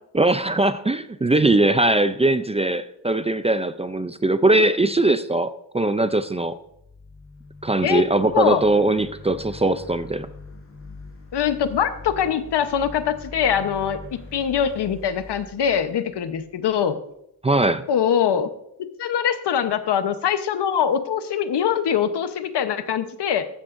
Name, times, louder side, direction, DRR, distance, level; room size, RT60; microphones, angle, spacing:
voice 1, 0.1-6.6 7.6-10.3 17.4-17.9, right 2 dB, 15° right, 12 dB, 0.3 m, -20 dB
sound 1, 6.6-16.8, left 2 dB, 35° left, 3.9 m, -43 dB
voice 2, 11.3-17.0 17.9-18.5 18.8-23.4, left 8 dB, 90° left, 10 dB, 1.0 m, -23 dB
14.5 x 12.0 x 2.6 m, 0.79 s
wide cardioid pair, 155°, 40 cm